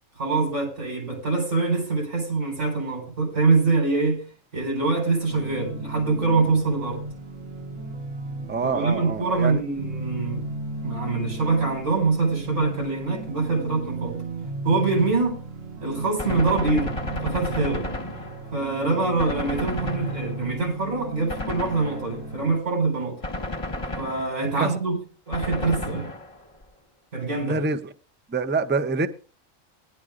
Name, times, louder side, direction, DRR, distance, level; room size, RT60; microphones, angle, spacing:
voice 1, 0.2-4.2 4.5-7.0 8.6-10.6 10.8-14.2 14.6-15.4 15.8-17.0 17.2-17.9 18.5-23.2 24.0-25.0 25.3-26.1 27.1-27.6, right 3 dB, 90° right, 4.4 m, -24 dB
sound 1, 5.3-22.6, right 2 dB, 70° right, 1.7 m, -35 dB
voice 2, 8.5-9.6 16.2-16.4 24.6-24.8 27.5-27.8 28.3-29.1, right 4 dB, 15° right, 0.4 m, -26 dB
Gunshot gunfire, 16.2-18.7 19.2-20.6 21.3-22.3 23.2-24.6 25.3-26.6, left 1 dB, 25° left, 1.2 m, -33 dB
20.0 x 11.0 x 2.5 m
omnidirectional pair, 1.4 m